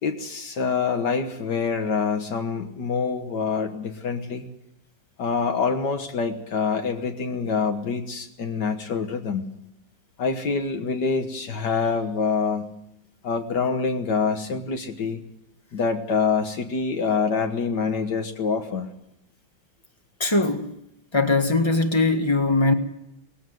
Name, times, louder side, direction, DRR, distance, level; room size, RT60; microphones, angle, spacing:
voice 1, 0.0-4.4 5.2-9.4 10.2-12.8 13.2-15.2 15.7-18.9, left 5 dB, 70° left, 2.0 m, -26 dB
voice 2, 20.2-20.6 21.1-22.7, left 2 dB, 15° left, 1.5 m, -20 dB
19.5 x 16.0 x 9.3 m
omnidirectional pair, 1.9 m